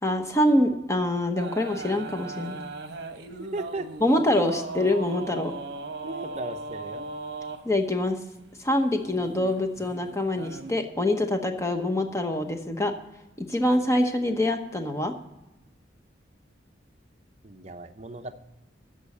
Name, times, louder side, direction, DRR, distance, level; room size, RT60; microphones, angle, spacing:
voice 1, 0.0-2.6 4.0-5.5 7.6-8.2 8.6-12.9 13.4-15.1, left 1 dB, 15° left, 5 dB, 1.0 m, -25 dB
sound 1, 1.4-7.6 9.0-10.7, right 3 dB, 65° right, 1.0 m, -38 dB
voice 2, 3.4-3.9 6.0-7.1 17.4-18.4, right 2 dB, 35° right, 6 dB, 0.7 m, -36 dB
14.0 x 5.5 x 8.4 m, 0.99 s
head